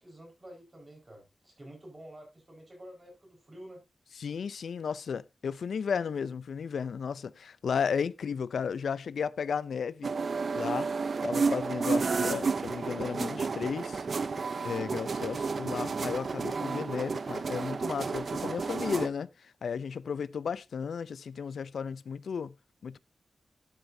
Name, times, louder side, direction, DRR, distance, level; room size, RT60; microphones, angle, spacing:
voice 1, 0.0-3.8 11.2-12.2, right 1 dB, 25° right, 4.6 m, -50 dB
voice 2, 4.2-10.1 10.5-10.9 11.2-14.0 14.6-22.5 22.8-23.0, left 6 dB, 85° left, 0.4 m, -34 dB
sound 1, 10.0-19.1, right 4 dB, 50° right, 0.6 m, -31 dB
12.0 x 8.0 x 2.7 m
wide cardioid pair, 150°, 0 cm